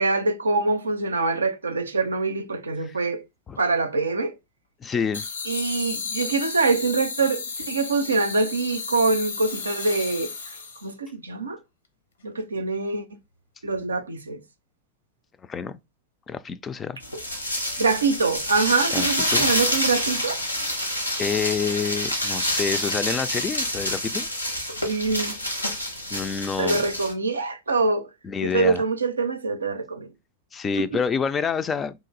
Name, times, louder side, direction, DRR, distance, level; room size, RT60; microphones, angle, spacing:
voice 1, 0.0-3.2 3.6-4.3 5.5-10.6 10.8-11.6 12.2-13.1 13.6-14.4 17.8-20.4 24.8-25.3 26.6-28.1 28.4-30.1, right 3 dB, 75° right, 0.5 m, -24 dB
voice 2, 4.8-5.3 15.5-15.8 16.3-17.0 18.9-19.5 21.2-24.3 26.1-26.8 28.2-28.8 30.5-31.9, left 6 dB, 20° left, 0.3 m, -28 dB
sound 1, 5.1-10.9, left 4 dB, 70° left, 0.7 m, -33 dB
sound 2, 17.0-27.1, left 1 dB, 85° left, 1.0 m, -27 dB
2.9 x 2.5 x 3.9 m
figure-of-eight pair, 90°, 0 cm